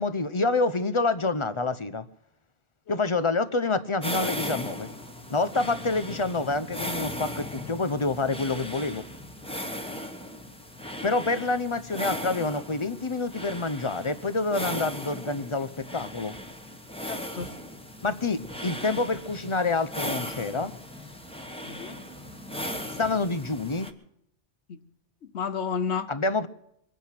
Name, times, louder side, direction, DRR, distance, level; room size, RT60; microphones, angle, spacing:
voice 1, 0.0-2.0 2.9-4.9 5.3-9.0 11.0-16.4 18.0-20.7 23.0-23.9 26.1-26.5, left 3 dB, 30° left, 13 dB, 0.7 m, -27 dB
sound 1, 4.0-23.9, equal, 5° left, 1.3 m, -37 dB
voice 2, 17.1-17.5 21.6-22.0 24.7-24.8 25.2-26.1, left 6 dB, 80° left, 10 dB, 1.2 m, -32 dB
23.5 x 9.3 x 5.9 m, 0.77 s
omnidirectional pair, 1.1 m